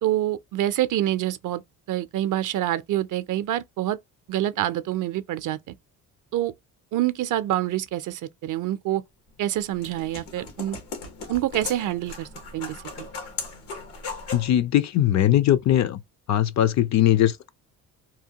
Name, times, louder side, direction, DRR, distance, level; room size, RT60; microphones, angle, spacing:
voice 1, 0.0-1.6 1.9-4.0 4.3-5.7 6.3-6.5 6.9-9.0 9.4-10.8 11.3-12.3 12.5-13.1, right 13 dB, 55° right, 0.5 m, -26 dB
sound 1, 9.3-14.5, left 4 dB, 90° left, 1.2 m, -38 dB
voice 2, 14.3-16.0 16.3-17.5, left 12 dB, 50° left, 0.4 m, -20 dB
2.8 x 2.1 x 2.8 m
supercardioid pair, 80°, 38 cm